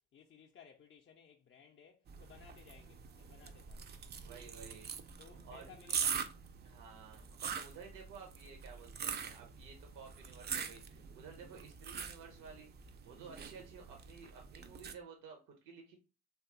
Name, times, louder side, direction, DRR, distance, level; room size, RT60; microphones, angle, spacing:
voice 1, 0.1-3.9 5.2-6.2, left 7 dB, 35° left, 0.4 m, -59 dB
sound 1, 2.1-14.9, right 7 dB, 30° right, 0.4 m, -43 dB
voice 2, 4.1-4.9 5.4-5.7 6.6-16.0, right 5 dB, 65° right, 0.6 m, -54 dB
2.7 x 2.3 x 2.4 m
hypercardioid pair, 55°, 34 cm